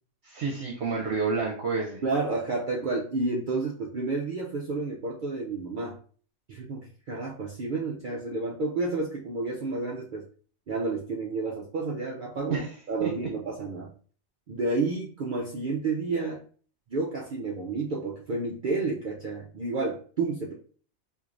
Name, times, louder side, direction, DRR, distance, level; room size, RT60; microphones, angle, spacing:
voice 1, 0.2-2.0 12.5-12.7 13.0-13.1, right 4 dB, 60° right, -1 dB, 0.9 m, -29 dB
voice 2, 2.0-6.0 6.5-10.2 10.7-13.9 14.5-16.4 16.9-20.5, right 3 dB, 85° right, -2 dB, 0.4 m, -30 dB
4.5 x 2.6 x 2.5 m, 0.43 s
omnidirectional pair, 1.5 m